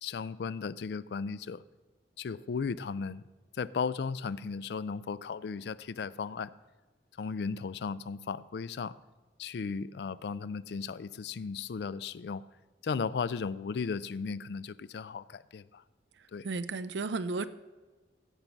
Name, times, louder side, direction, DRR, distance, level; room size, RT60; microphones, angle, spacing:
voice 1, 0.0-1.6 2.2-3.3 3.5-6.5 7.2-8.9 9.4-12.4 12.8-15.8 16.3-16.5, left 5 dB, 70° left, 18 dB, 0.4 m, -35 dB
voice 2, 16.4-17.5, right 3 dB, 80° right, 13 dB, 0.5 m, -33 dB
15.5 x 6.0 x 5.2 m, 1.3 s
head